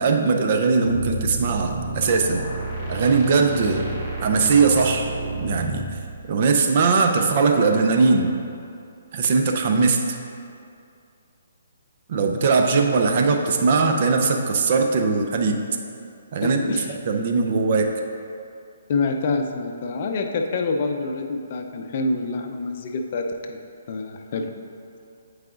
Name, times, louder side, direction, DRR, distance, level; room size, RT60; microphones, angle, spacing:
voice 1, 0.0-2.5 2.9-3.9 4.2-5.1 5.4-5.8 6.3-8.3 9.1-10.2 12.1-15.6 16.3-16.6 17.1-17.9, right 4 dB, 45° right, 4 dB, 0.5 m, -20 dB
sound 1, 0.8-5.9, right 2 dB, 30° right, 1.3 m, -30 dB
voice 2, 16.4-17.0 18.9-24.5, left 3 dB, 45° left, 4 dB, 0.5 m, -27 dB
8.9 x 4.7 x 2.5 m, 2.5 s
hypercardioid pair, 145°, 0 cm